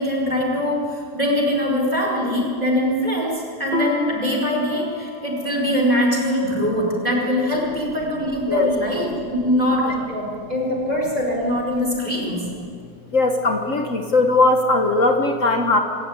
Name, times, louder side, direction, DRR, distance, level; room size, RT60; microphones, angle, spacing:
voice 1, 0.0-12.4, equal, 25° right, -2 dB, 5.2 m, -22 dB
Piano, 3.7-8.7, left 3 dB, 5° left, 0.7 m, -34 dB
voice 2, 13.1-15.8, left 2 dB, 55° left, 4 dB, 1.6 m, -19 dB
26.5 x 14.0 x 9.5 m, 2.3 s
omnidirectional pair, 1.7 m